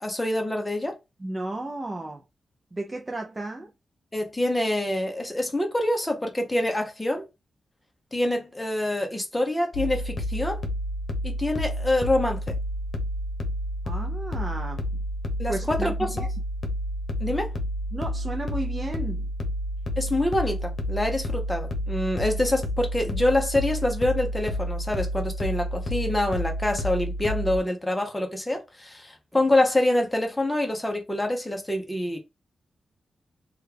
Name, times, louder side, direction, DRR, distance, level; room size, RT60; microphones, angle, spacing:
voice 1, 0.0-0.9 4.1-7.3 8.1-10.6 11.2-12.5 15.4-16.1 17.2-17.5 20.0-32.2, left 1 dB, 10° left, 0.8 m, -26 dB
voice 2, 1.2-2.2 2.7-3.7 13.8-14.8 15.5-16.3 17.9-19.3, right 2 dB, 25° right, 0.5 m, -33 dB
sound 1, 9.7-27.6, equal, 60° left, 0.9 m, -30 dB
3.1 x 2.3 x 3.3 m
wide cardioid pair, 95°, 0 cm